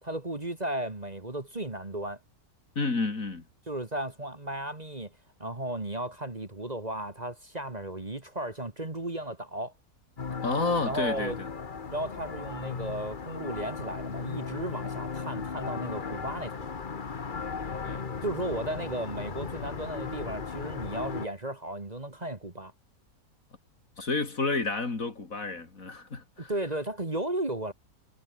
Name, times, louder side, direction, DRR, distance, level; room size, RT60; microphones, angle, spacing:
voice 1, 0.0-2.2 3.7-5.1 5.4-9.7 10.8-11.4 11.9-16.7 18.2-22.7 26.5-27.7, right 1 dB, 25° right, 2.2 m, -35 dB
voice 2, 2.8-3.5 10.4-11.5 17.8-18.0 24.0-26.5, left 3 dB, 60° left, 3.5 m, -30 dB
sound 1, 10.2-21.3, left 5 dB, 35° left, 1.2 m, -36 dB
omnidirectional pair, 1.6 m